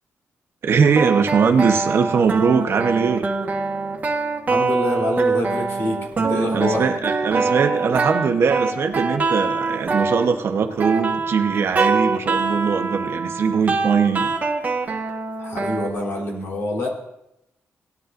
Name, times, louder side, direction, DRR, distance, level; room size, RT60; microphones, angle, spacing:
voice 1, 0.6-3.3 6.5-14.3, right 6 dB, 60° right, 5 dB, 1.1 m, -20 dB
sound 1, 0.8-15.9, right 4 dB, 35° right, 1.4 m, -24 dB
voice 2, 4.5-6.9 15.4-16.9, left 2 dB, 65° left, -1 dB, 3.6 m, -26 dB
18.0 x 11.0 x 2.6 m, 0.84 s
wide cardioid pair, 130°, 5 cm